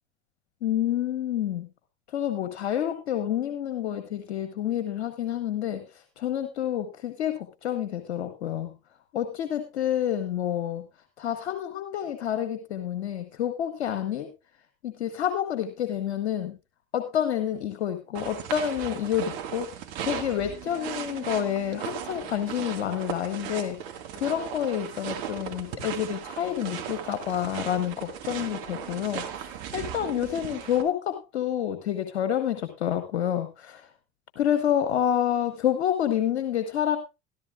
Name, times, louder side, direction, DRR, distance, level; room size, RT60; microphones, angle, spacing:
voice 1, 0.6-1.7 2.1-8.7 9.1-10.8 11.2-14.3 14.8-16.6 16.9-19.7 20.0-23.8 24.1-33.9 34.4-37.0, left 10 dB, 85° left, 8 dB, 1.1 m, -28 dB
sound 1, 18.1-30.8, right 9 dB, 65° right, 2.0 m, -37 dB
14.0 x 13.0 x 2.4 m, 0.26 s
hypercardioid pair, 70°, 33 cm